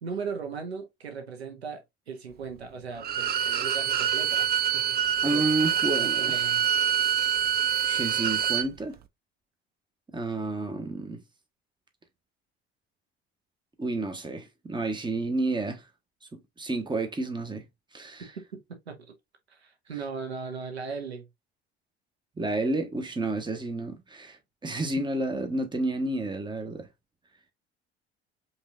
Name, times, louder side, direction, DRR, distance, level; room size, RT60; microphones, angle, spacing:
voice 1, 0.0-4.5 4.7-5.0 5.2-5.4 5.8-6.7 18.2-19.1 19.5-21.3, right 5 dB, 85° right, 1.0 m, -38 dB
Bowed string instrument, 3.0-8.7, right 9 dB, 30° right, 0.5 m, -26 dB
voice 2, 5.2-6.6 7.8-9.0 10.1-11.2 13.8-15.8 16.3-17.6 17.9-18.3 22.4-24.4 24.6-26.9, right 2 dB, 15° right, 1.1 m, -30 dB
5.2 x 3.2 x 2.4 m
figure-of-eight pair, 60°, 31 cm